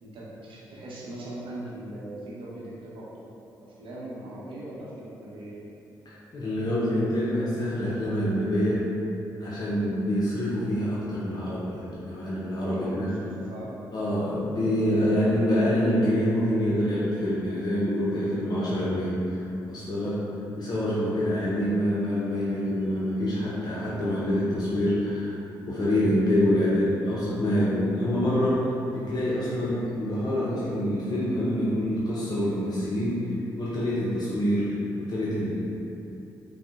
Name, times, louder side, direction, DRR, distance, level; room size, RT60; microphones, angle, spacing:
voice 1, 0.0-3.1 3.6-5.6 12.7-13.8, right 1 dB, 70° right, -6 dB, 0.7 m, -40 dB
voice 2, 6.1-8.8 9.4-13.1 13.9-19.4 19.7-20.2 20.6-25.3 25.7-33.2 33.5-35.6, equal, 45° left, -8 dB, 0.6 m, -26 dB
3.7 x 2.0 x 2.3 m, 3.0 s
hypercardioid pair, 45°, 9 cm